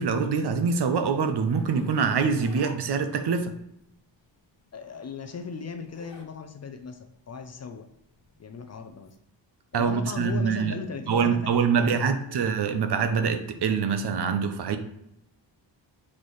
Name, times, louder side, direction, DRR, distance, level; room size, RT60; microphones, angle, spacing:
voice 1, 0.0-3.5 9.7-10.7 11.1-14.8, right 6 dB, 60° right, 8 dB, 0.7 m, -25 dB
Zipper (clothing), 1.5-3.5 4.7-6.3 6.7-9.1, left 4 dB, 70° left, 1.0 m, -47 dB
voice 2, 4.7-7.9 8.4-9.2 9.7-12.5, left 5 dB, 35° left, 7 dB, 0.4 m, -38 dB
7.2 x 4.3 x 3.1 m, 0.78 s
wide cardioid pair, 150°, 45 cm